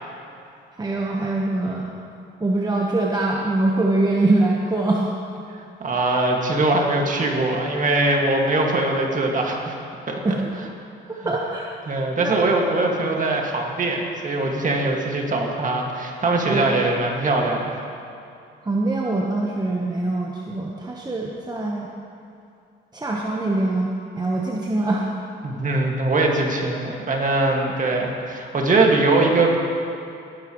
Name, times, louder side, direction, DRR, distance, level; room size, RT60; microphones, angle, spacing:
voice 1, 0.8-1.9 2.4-5.1 10.2-10.4 11.1-11.7 12.2-12.4 16.5-16.7 18.6-21.9 22.9-25.1, right 2 dB, 20° right, -2 dB, 1.1 m, -23 dB
voice 2, 5.8-9.8 10.1-10.2 11.9-17.8 25.4-29.6, right 2 dB, 40° right, 0 dB, 1.9 m, -21 dB
18.5 x 9.9 x 3.1 m, 2.5 s
cardioid pair, 90°, 20 cm